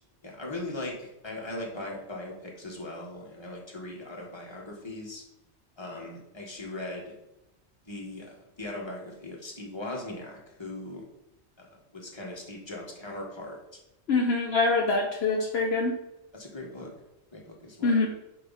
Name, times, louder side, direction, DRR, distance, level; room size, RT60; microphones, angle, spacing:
voice 1, 0.2-5.2 5.8-7.1 7.9-11.0 11.6-13.6 16.3-16.9 17.3-18.0, left 2 dB, 25° left, -2 dB, 1.7 m, -39 dB
voice 2, 14.1-15.9 17.8-18.1, left 3 dB, 65° left, 0 dB, 1.2 m, -24 dB
10.0 x 4.6 x 4.2 m, 0.90 s
omnidirectional pair, 1.2 m